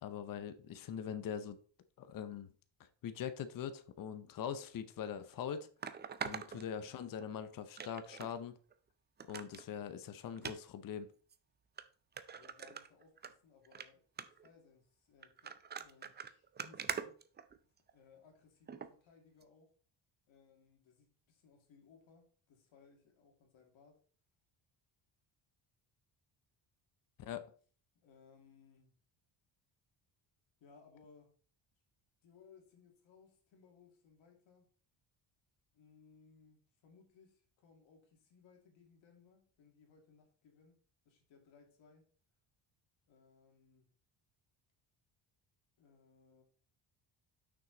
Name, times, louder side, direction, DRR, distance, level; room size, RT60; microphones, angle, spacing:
voice 1, 0.0-1.6 2.0-2.5 2.8-5.7 6.2-8.6 9.3-11.1 27.2-27.4, left 8 dB, 45° left, 0.7 m, -42 dB
sound 1, 4.8-4.9 5.8-7.3 7.8-8.3 8.7-8.8 9.2-9.6 10.4-10.6 11.3-11.4 11.8-11.9 12.2-13.3 13.6-13.9 14.2-14.5 15.2-17.9 18.7-18.9 19.4-19.5, right 6 dB, 25° right, 0.4 m, -43 dB
voice 2, 12.3-17.2 17.9-19.7 20.3-24.0 28.0-29.0 30.6-31.3 32.2-34.7 35.7-40.8 41.0-42.1 43.1-43.9 45.8-46.4, left 5 dB, 70° left, 2.4 m, -64 dB
6.1 x 6.1 x 3.9 m
cardioid pair, 130°, 48 cm